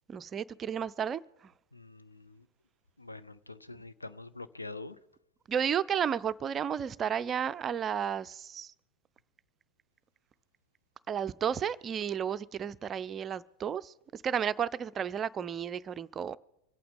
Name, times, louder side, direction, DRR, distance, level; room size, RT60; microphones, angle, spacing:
voice 1, 0.1-1.2 5.5-8.7 11.1-16.4, right 8 dB, 25° right, 0.5 m, -32 dB
voice 2, 1.7-2.5 3.0-5.0, left 3 dB, 80° left, 0.7 m, -45 dB
25.0 x 8.6 x 5.1 m
figure-of-eight pair, 90°, 0 cm